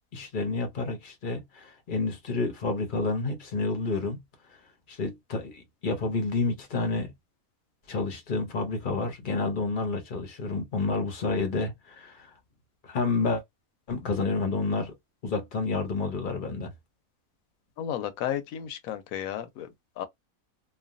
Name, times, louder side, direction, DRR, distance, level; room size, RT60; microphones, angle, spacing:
voice 1, 0.1-4.2 4.9-7.1 7.9-12.3 12.8-13.4 13.9-14.9 15.2-16.7, left 3 dB, 45° left, 0.7 m, -29 dB
voice 2, 17.8-19.7 20.0-20.1, left 10 dB, 75° left, 1.0 m, -33 dB
3.2 x 2.1 x 2.5 m
omnidirectional pair, 1.5 m